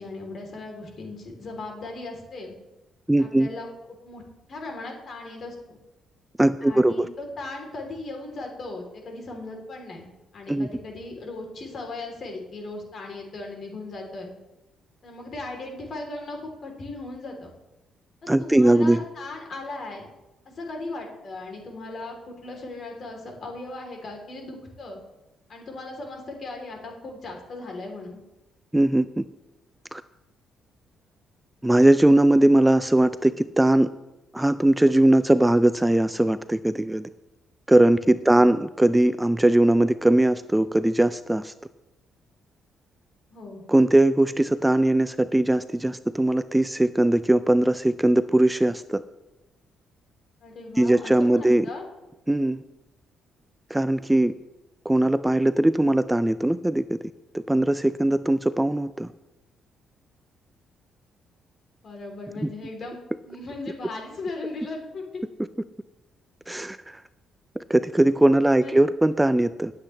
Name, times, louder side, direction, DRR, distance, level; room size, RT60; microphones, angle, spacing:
voice 1, 0.0-2.6 3.2-3.7 4.0-4.2 4.5-5.8 6.6-10.1 10.3-14.3 15.0-17.5 18.4-20.1 20.5-25.0 25.5-28.2 38.3-38.6 43.3-43.6 50.4-51.8 61.8-65.2 68.6-68.8, left 2 dB, 50° left, 1 dB, 3.4 m, -37 dB
voice 2, 3.1-3.5 6.4-7.1 10.5-10.7 18.3-19.0 28.7-29.2 29.9-30.0 31.6-33.9 34.3-37.1 37.7-41.5 43.7-49.0 50.8-51.7 52.3-52.6 53.7-54.3 54.9-57.1 57.5-59.1 62.4-62.5 66.5-67.0 67.6-69.7, right 1 dB, 10° right, 13 dB, 0.3 m, -20 dB
18.0 x 8.3 x 3.3 m, 1.0 s
cardioid pair, 90°, 0 cm